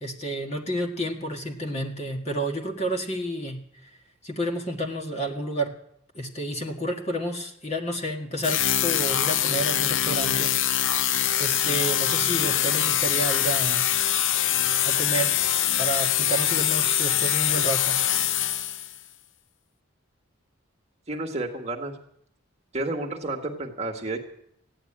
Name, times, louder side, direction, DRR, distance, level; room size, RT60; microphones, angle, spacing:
voice 1, 0.0-3.9 4.2-5.8 6.1-10.6 11.0-11.1 11.4-13.9 14.8-15.4 15.8-18.0, right 1 dB, 30° left, 2 dB, 1.8 m, -30 dB
sound 1, 8.4-19.0, left 11 dB, 60° left, 0.5 m, -24 dB
voice 2, 21.1-21.9 22.7-24.2, right 2 dB, 30° right, 2 dB, 1.7 m, -31 dB
16.0 x 10.0 x 8.8 m, 0.72 s
head